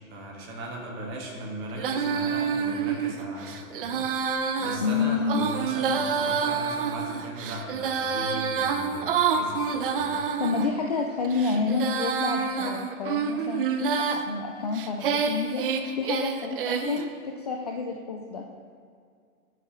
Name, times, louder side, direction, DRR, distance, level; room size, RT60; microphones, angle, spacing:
voice 1, 0.1-10.2, right 1 dB, 20° right, -1 dB, 1.7 m, -38 dB
Female singing, 1.8-10.7 11.2-14.2 14.7-17.0, right 6 dB, 40° right, 0.7 m, -28 dB
voice 2, 4.8-5.5 10.1-15.6 16.0-18.4, left 4 dB, 30° left, 1 dB, 0.4 m, -29 dB
17.5 x 7.8 x 3.1 m, 2.3 s
hypercardioid pair, 160°, 42 cm